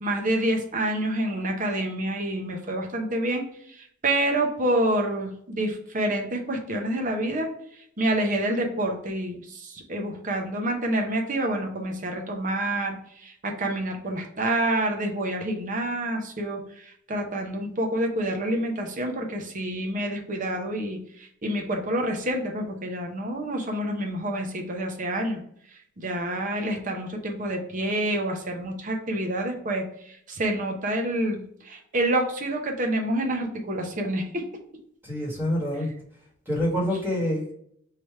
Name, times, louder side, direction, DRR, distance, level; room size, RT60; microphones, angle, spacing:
voice 1, 0.0-7.5 8.0-25.4 26.0-34.4, right 1 dB, 40° right, 2 dB, 0.7 m, -28 dB
voice 2, 35.0-35.9 36.5-37.5, left 1 dB, 10° right, -4 dB, 1.4 m, -26 dB
3.3 x 2.9 x 4.6 m, 0.68 s
head